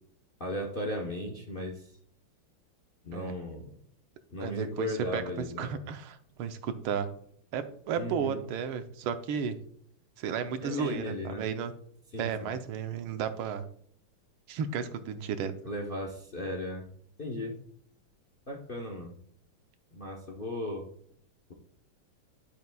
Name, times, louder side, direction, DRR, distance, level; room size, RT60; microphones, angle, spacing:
voice 1, 0.4-1.9 3.0-3.8 4.3-5.8 8.0-8.4 10.6-11.5 12.1-12.5 15.6-16.9 17.2-17.6 18.5-19.1 19.9-20.9, left 1 dB, 40° left, 1 dB, 0.8 m, -36 dB
voice 2, 4.4-7.1 7.5-9.6 10.2-11.7 12.2-13.6 14.5-15.5, right 7 dB, 80° right, 9 dB, 1.6 m, -33 dB
10.5 x 8.0 x 2.3 m, 0.64 s
omnidirectional pair, 2.3 m